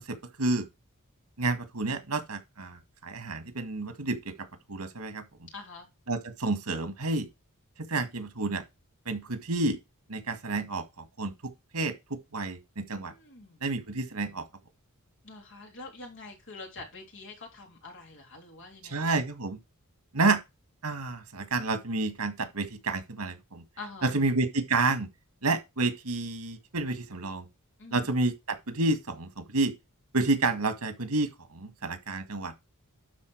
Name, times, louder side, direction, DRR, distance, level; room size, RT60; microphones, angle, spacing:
voice 1, 0.1-0.7 1.4-4.3 4.7-5.2 6.1-7.3 7.9-8.6 9.1-9.8 10.1-10.8 11.2-11.3 11.7-13.1 13.6-14.4 18.8-19.6 20.1-20.4 20.8-23.6 24.0-25.1 25.4-27.5 27.9-29.7 30.1-32.5, right 3 dB, 85° right, 2.0 m, -29 dB
voice 2, 5.5-5.9 13.1-13.6 15.2-19.1 23.8-24.1 27.8-28.1, left 3 dB, 60° left, 3.5 m, -45 dB
11.5 x 4.4 x 4.7 m
head